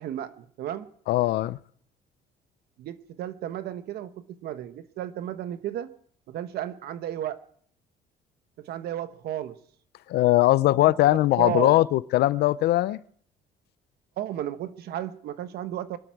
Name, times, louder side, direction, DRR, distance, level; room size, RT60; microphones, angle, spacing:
voice 1, 0.0-0.9 2.8-5.9 6.3-7.4 8.6-9.6 10.9-11.9 14.2-16.0, right 11 dB, 70° right, 1.1 m, -34 dB
voice 2, 1.1-1.6 10.1-13.0, left 16 dB, 75° left, 0.6 m, -20 dB
23.5 x 12.0 x 4.7 m
cardioid pair, 110°, 17 cm